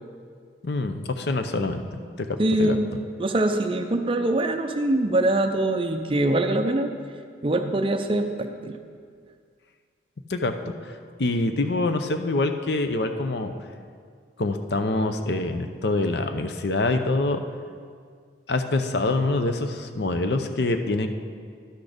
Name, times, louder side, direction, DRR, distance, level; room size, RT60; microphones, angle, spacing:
voice 1, 0.6-1.8 2.2-2.8 10.3-10.7 11.2-13.5 14.4-17.4 18.5-21.1, left 2 dB, 60° left, 7 dB, 0.6 m, -25 dB
voice 2, 2.4-2.9 3.2-6.9 7.4-8.8, right 1 dB, 30° right, 6 dB, 0.5 m, -23 dB
11.5 x 6.2 x 5.1 m, 2.1 s
head